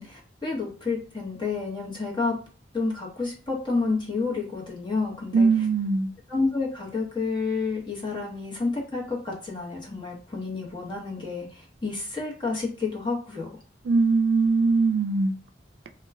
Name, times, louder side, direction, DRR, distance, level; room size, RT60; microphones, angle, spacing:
voice 1, 0.0-2.3 2.7-5.5 6.3-13.5, left 4 dB, 25° left, 0.8 m, -30 dB
voice 2, 5.3-6.1 13.8-15.3, right 4 dB, 75° right, 0.3 m, -21 dB
2.2 x 2.1 x 3.4 m
head